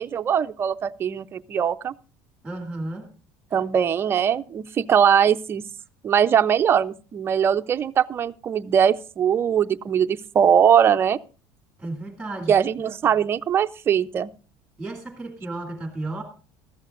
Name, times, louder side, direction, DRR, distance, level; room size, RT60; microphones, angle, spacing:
voice 1, 0.0-1.9 3.5-5.6 6.0-11.2 12.5-14.3, right 8 dB, 25° right, 0.5 m, -21 dB
voice 2, 2.4-3.1 11.8-12.5 14.8-16.2, right 2 dB, 5° right, 2.4 m, -33 dB
19.0 x 14.0 x 2.4 m
cardioid pair, 150°, 9 cm